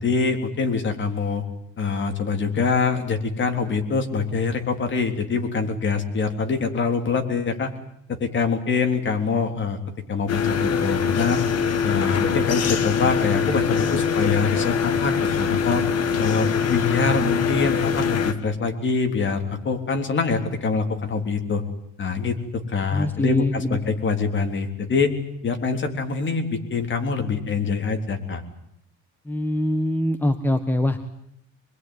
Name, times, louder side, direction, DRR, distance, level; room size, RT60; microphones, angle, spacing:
voice 1, 0.0-1.4 1.8-7.7 8.1-9.8 10.1-11.4 11.8-15.8 16.2-21.6 22.0-25.1 25.4-28.4, left 4 dB, 40° left, 5 dB, 3.7 m, -24 dB
sound 1, 10.3-18.3, left 6 dB, 55° left, 2.2 m, -23 dB
voice 2, 22.9-23.8 29.2-31.0, left 1 dB, 5° left, 8 dB, 1.4 m, -23 dB
25.5 x 22.0 x 9.7 m, 0.75 s
cardioid pair, 145°, 30 cm